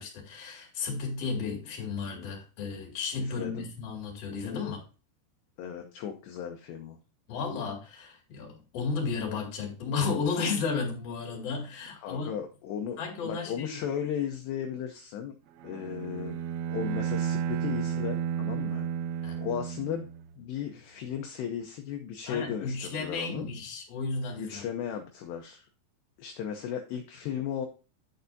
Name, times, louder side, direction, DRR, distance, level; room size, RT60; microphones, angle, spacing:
voice 1, 0.0-4.8 7.3-12.3 13.0-13.8 19.2-19.4 22.3-24.6, left 4 dB, 40° left, 2.7 m, -33 dB
voice 2, 3.2-3.7 5.6-7.0 11.9-15.3 15.6-16.4 16.7-18.9 19.4-20.1 20.4-23.5 24.4-25.7 26.2-27.7, left 8 dB, 75° left, 2.7 m, -35 dB
Bowed string instrument, 15.6-20.4, right 8 dB, 80° right, 2.8 m, -32 dB
10.5 x 6.6 x 2.6 m
omnidirectional pair, 5.4 m